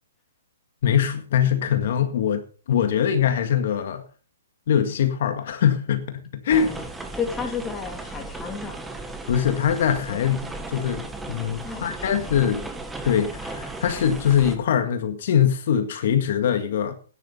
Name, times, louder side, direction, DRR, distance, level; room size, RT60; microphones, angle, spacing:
voice 1, 0.8-2.4 2.7-4.0 4.7-6.7 9.3-12.6 13.0-16.9, left 8 dB, 55° left, 1.8 m, -22 dB
sound 1, 6.5-14.6, right 2 dB, 5° right, 1.4 m, -36 dB
voice 2, 7.1-8.8 10.1-10.2 11.6-12.6, left 5 dB, 10° left, 2.6 m, -33 dB
12.0 x 10.0 x 5.6 m
hypercardioid pair, 155°, 0 cm